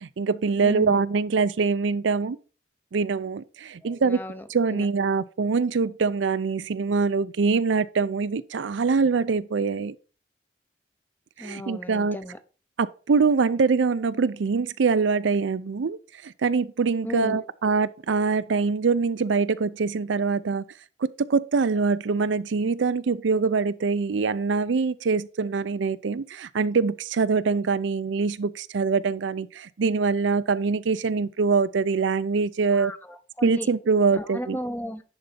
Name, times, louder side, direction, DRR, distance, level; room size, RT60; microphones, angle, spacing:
voice 1, 0.0-2.4 2.9-4.2 4.5-10.0 11.4-12.2 12.8-16.0 16.2-20.6 21.0-32.9 33.4-34.6, right 4 dB, 90° right, 0.5 m, -24 dB
voice 2, 0.6-1.1 3.8-4.9 11.4-12.4 17.0-17.5 32.7-33.7 34.1-35.0, left 1 dB, 10° left, 0.7 m, -35 dB
10.5 x 4.0 x 5.1 m
head